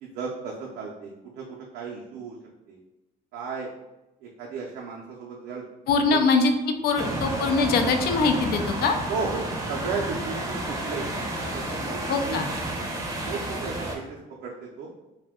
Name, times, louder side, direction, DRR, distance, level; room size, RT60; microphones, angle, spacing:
voice 1, 0.0-2.4 2.7-2.8 3.3-3.7 4.2-5.7 6.1-6.2 9.1-11.1 11.5-12.4 13.2-14.9, right 4 dB, 80° right, -2 dB, 0.5 m, -34 dB
voice 2, 5.9-9.0 12.1-12.5, left 4 dB, 65° left, 6 dB, 0.4 m, -23 dB
sound 1, 7.0-14.0, right 1 dB, 20° right, 0.6 m, -31 dB
2.6 x 2.1 x 3.5 m, 0.98 s
cardioid pair, 110°, 17 cm